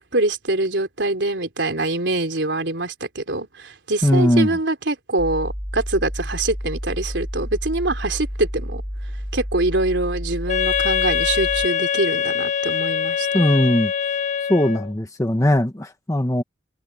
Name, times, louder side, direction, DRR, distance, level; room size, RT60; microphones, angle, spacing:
voice 1, 0.0-8.8 9.3-13.4, right 2 dB, 75° right, 3.7 m, -24 dB
voice 2, 4.0-4.6 13.3-13.9 14.4-16.4, left 1 dB, 20° left, 1.1 m, -19 dB
sound 1, 5.2-11.7, equal, ahead, 5.1 m, -30 dB
Wind instrument woodwind instrument, 10.5-14.9, left 7 dB, 40° left, 0.8 m, -23 dB
head